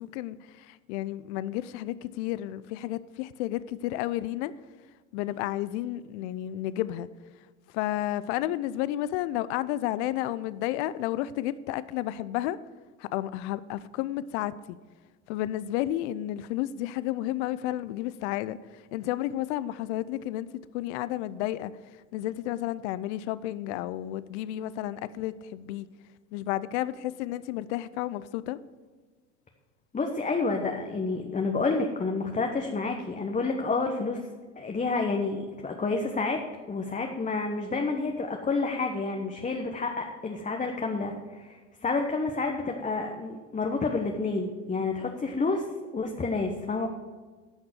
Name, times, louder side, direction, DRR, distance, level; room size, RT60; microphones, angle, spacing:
voice 1, 0.0-4.6 5.1-7.1 7.7-12.6 13.0-14.8 15.3-20.5 20.7-25.9 26.3-28.6, left 14 dB, 75° left, 0.5 m, -32 dB
voice 2, 29.9-34.2 34.6-36.4 36.7-41.6 41.8-45.6 45.9-46.9, left 3 dB, 20° left, 1.1 m, -29 dB
11.0 x 5.9 x 7.7 m
hypercardioid pair, 80°, 34 cm